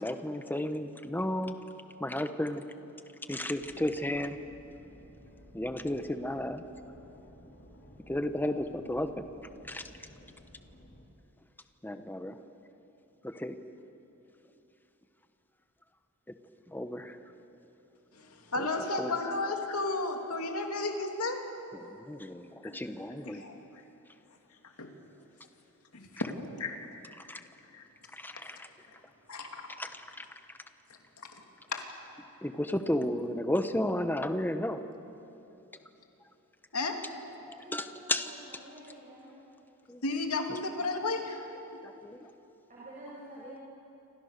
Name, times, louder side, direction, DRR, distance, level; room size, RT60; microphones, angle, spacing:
voice 1, 0.0-1.6 2.0-2.6 3.3-4.4 5.5-6.6 8.1-9.3 9.7-9.8 11.8-12.4 13.2-13.6 16.7-17.3 18.6-18.7 19.0-19.1 21.7-23.4 27.2-27.4 28.1-28.7 29.8-30.2 32.4-34.8 37.5-38.3 39.9-40.0 40.5-40.6 41.8-42.3 43.4-43.5, left 1 dB, 10° left, 8 dB, 1.1 m, -33 dB
sound 1, 3.4-11.0, equal, 55° left, 3.4 m, -55 dB
voice 2, 18.1-21.4 22.6-22.8 23.2-23.6 24.8-25.0 25.9-26.3 26.6-26.8 27.7-27.9 29.3-29.8 31.2-31.3 31.7-31.9 36.7-37.0 40.0-41.4 41.7-41.8, left 3 dB, 80° left, 3 dB, 2.8 m, -33 dB
voice 3, 37.6-39.3 42.7-43.6, right 1 dB, 35° right, -7 dB, 6.4 m, -48 dB
28.0 x 26.0 x 6.8 m, 2.9 s
head